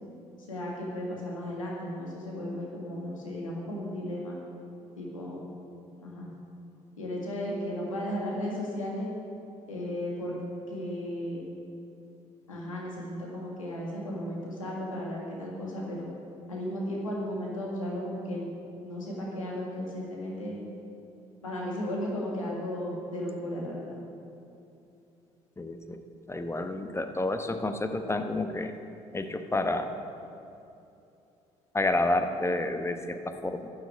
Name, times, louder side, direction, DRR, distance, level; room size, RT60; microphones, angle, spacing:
voice 1, 0.5-4.4 5.0-5.4 6.0-6.3 7.0-9.1 9.7-10.3 10.7-11.4 12.5-16.1 16.5-18.5 18.8-20.6 21.4-24.0, left 1 dB, 90° left, -3 dB, 1.9 m, -35 dB
voice 2, 25.6-28.7 29.1-29.9 31.7-33.7, left 2 dB, 15° left, 7 dB, 1.1 m, -30 dB
12.5 x 6.7 x 8.3 m, 2.8 s
figure-of-eight pair, 50°, 17 cm